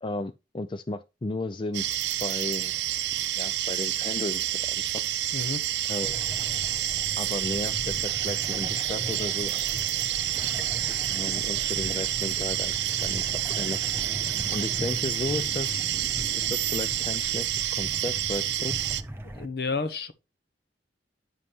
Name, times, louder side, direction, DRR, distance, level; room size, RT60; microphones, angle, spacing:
voice 1, 0.0-1.9 2.2-2.7 3.4-5.0 5.9-6.3 7.2-9.5 10.3-10.4 11.1-13.8 14.5-15.9 16.3-18.8, left 2 dB, 25° left, 0.4 m, -34 dB
sound 1, 1.7-19.0, right 13 dB, 75° right, 0.6 m, -29 dB
voice 2, 5.3-5.6 19.3-20.1, left 4 dB, 60° left, 1.0 m, -30 dB
sound 2, 6.0-19.5, right 1 dB, 15° right, 0.8 m, -39 dB
9.5 x 7.2 x 2.9 m
head